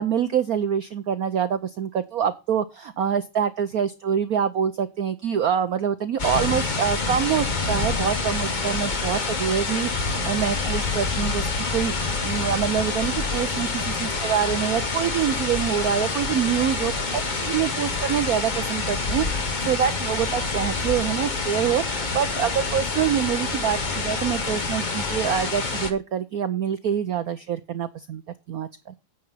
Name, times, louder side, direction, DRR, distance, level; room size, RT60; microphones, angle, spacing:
voice 1, 0.0-11.9 12.2-28.2 28.5-28.9, right 8 dB, 80° right, 11 dB, 0.8 m, -25 dB
sound 1, 6.2-25.9, left 3 dB, 30° left, 0.9 m, -27 dB
9.5 x 7.0 x 5.6 m, 0.28 s
omnidirectional pair, 2.4 m